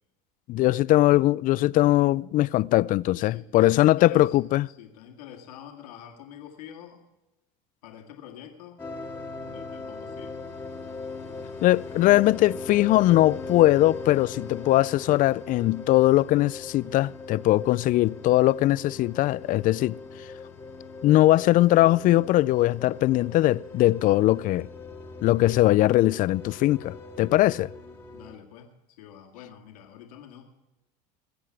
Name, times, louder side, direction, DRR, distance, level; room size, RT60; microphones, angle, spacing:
voice 1, 0.5-4.7 11.6-20.0 21.0-24.7 25.2-27.7, left 16 dB, 45° left, 0.4 m, -21 dB
voice 2, 3.1-4.4 4.7-7.0 7.8-8.8 9.5-10.4 28.1-30.5, left 9 dB, 85° left, 2.1 m, -46 dB
sound 1, 8.8-28.4, left 4 dB, 15° left, 1.9 m, -40 dB
21.0 x 8.0 x 4.7 m
supercardioid pair, 100°, 19 cm